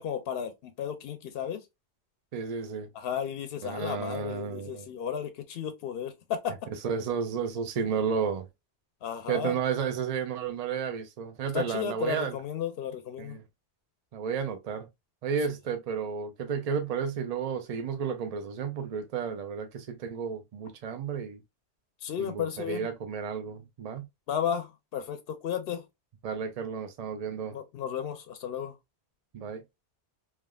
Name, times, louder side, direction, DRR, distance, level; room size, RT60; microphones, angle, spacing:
voice 1, 0.0-1.6 2.9-6.5 9.0-9.5 11.5-13.4 22.0-22.9 24.3-25.8 27.5-28.7, left 8 dB, 65° left, 0.7 m, -33 dB
voice 2, 2.3-2.9 3.6-4.9 6.7-8.5 9.3-12.4 13.2-13.4 14.1-14.9 15.2-21.4 22.2-24.1 26.2-27.6 29.3-29.6, right 6 dB, 60° right, 0.4 m, -32 dB
3.4 x 2.3 x 2.2 m
omnidirectional pair, 1.2 m